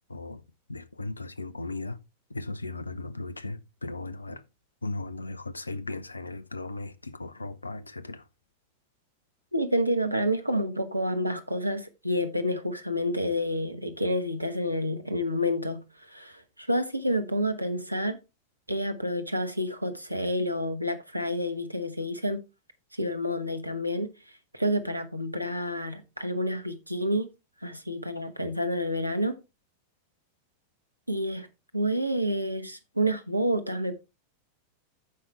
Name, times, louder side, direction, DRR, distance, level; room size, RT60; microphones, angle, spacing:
voice 1, 0.1-0.4 0.7-2.0 2.3-4.4 4.8-8.2, left 2 dB, 80° left, 0.7 m, -37 dB
voice 2, 9.5-18.2 18.7-22.4 22.9-24.1 24.5-27.3 27.6-29.4 31.1-31.5 31.7-33.9, equal, 85° right, 1.2 m, -29 dB
14.5 x 5.8 x 3.2 m
figure-of-eight pair, 90°, 0 cm